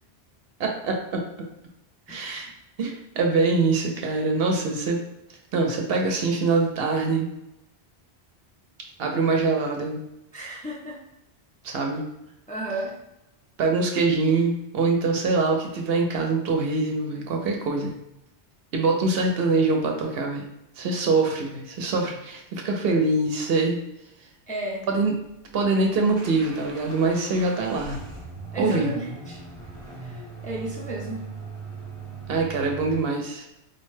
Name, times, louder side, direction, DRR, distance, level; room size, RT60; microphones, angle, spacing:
voice 1, 0.6-1.3 2.1-2.5 2.8-5.0 5.5-7.3 9.0-10.0 11.6-12.1 13.6-17.9 18.7-20.5 20.8-23.8 24.9-25.1 25.5-28.0 28.6-28.9 32.3-33.4, right 3 dB, 65° right, 2 dB, 0.8 m, -24 dB
voice 2, 2.1-2.4 10.3-11.0 12.5-12.9 24.5-24.9 28.5-29.4 30.0-31.3, right 2 dB, 10° left, -4 dB, 0.4 m, -33 dB
sound 1, 25.2-33.0, right 4 dB, 35° right, 0.8 m, -39 dB
4.3 x 2.1 x 3.1 m, 0.86 s
omnidirectional pair, 1.1 m